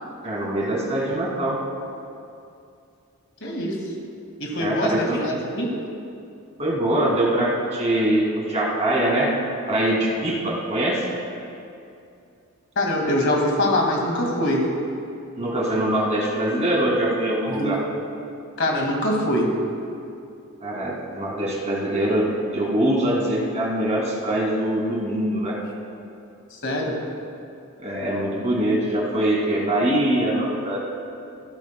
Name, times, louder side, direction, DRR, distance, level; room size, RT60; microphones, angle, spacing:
voice 1, 0.2-1.6 4.6-5.2 6.6-9.3 9.7-11.0 15.4-17.8 20.6-25.6 27.8-30.8, right 1 dB, 30° right, -4 dB, 2.2 m, -23 dB
voice 2, 3.4-3.8 4.4-5.7 12.8-14.7 17.5-17.8 18.6-19.5 26.6-27.0, left 1 dB, 60° left, 0 dB, 1.9 m, -23 dB
16.0 x 12.0 x 2.2 m, 2.6 s
head